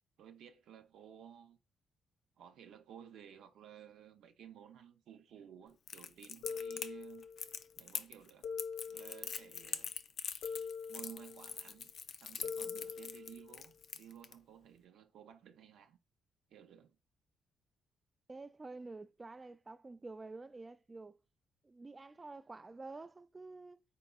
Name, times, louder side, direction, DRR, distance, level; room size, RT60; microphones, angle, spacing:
voice 1, 0.2-1.6 2.4-7.5 7.8-8.5 8.9-9.9 10.9-11.9 12.2-16.0 16.5-17.0, right 9 dB, 75° right, 0.6 m, -55 dB
Crackle, 5.9-14.3, left 7 dB, 60° left, 0.4 m, -43 dB
sound 1, 6.4-7.6 8.4-9.6 10.4-11.6 12.4-13.6, left 6 dB, 85° left, 1.0 m, -44 dB
voice 2, 18.3-21.2 21.6-23.8, right 3 dB, 25° right, 0.3 m, -49 dB
4.5 x 3.9 x 2.3 m
cardioid pair, 90°, 0 cm